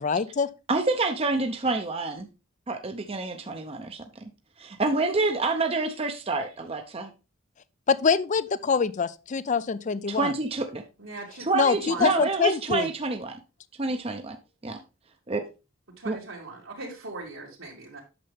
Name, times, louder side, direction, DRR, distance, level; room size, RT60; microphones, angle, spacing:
voice 1, 0.0-0.5 7.9-10.3 11.5-12.9, left 5 dB, 40° left, 0.4 m, -25 dB
voice 2, 0.7-2.3 2.7-4.3 4.6-7.1 10.1-10.8 11.4-13.4 13.8-14.4 14.6-14.8 15.3-15.4 16.1-16.2, right 3 dB, 30° right, 0.7 m, -28 dB
voice 3, 11.0-12.3 16.0-18.0, right 3 dB, 85° right, 2.6 m, -39 dB
8.7 x 6.8 x 3.4 m
head